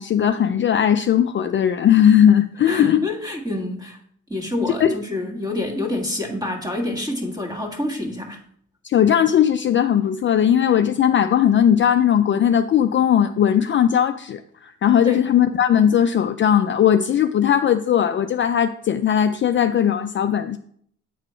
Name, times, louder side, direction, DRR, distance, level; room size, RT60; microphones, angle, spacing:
voice 1, 0.0-3.1 4.8-4.9 8.8-20.6, left 9 dB, 40° left, 0.4 m, -18 dB
voice 2, 2.6-4.0 4.3-8.4 15.0-15.3, left 1 dB, 10° right, 1.7 m, -27 dB
9.0 x 4.1 x 4.4 m
cardioid pair, 90°, 30 cm